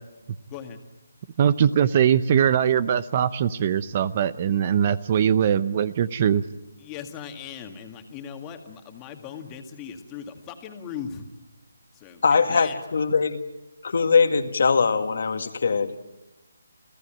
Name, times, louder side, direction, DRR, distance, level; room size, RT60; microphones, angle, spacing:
voice 1, 0.5-0.8 6.8-11.2 11.9-12.8, left 8 dB, 15° left, 5 dB, 2.0 m, -39 dB
voice 2, 1.4-6.4, right 9 dB, 30° right, 16 dB, 0.7 m, -21 dB
voice 3, 12.2-13.4 13.8-15.9, left 5 dB, 60° left, 7 dB, 2.0 m, -21 dB
30.0 x 15.5 x 9.0 m, 1.1 s
hypercardioid pair, 165°, 0 cm